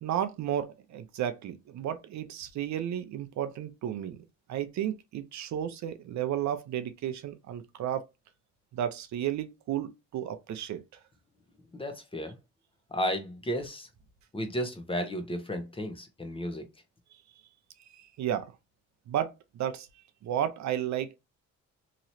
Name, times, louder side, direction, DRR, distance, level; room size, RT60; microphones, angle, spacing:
voice 1, 0.0-4.2 4.5-8.1 8.7-11.0 17.9-18.5 19.1-19.9 20.2-21.2, right 10 dB, 65° right, 0.6 m, -33 dB
voice 2, 11.7-12.4 12.9-13.9 14.3-16.6, equal, 20° left, 0.8 m, -33 dB
3.0 x 2.9 x 2.6 m
cardioid pair, 90°, 30 cm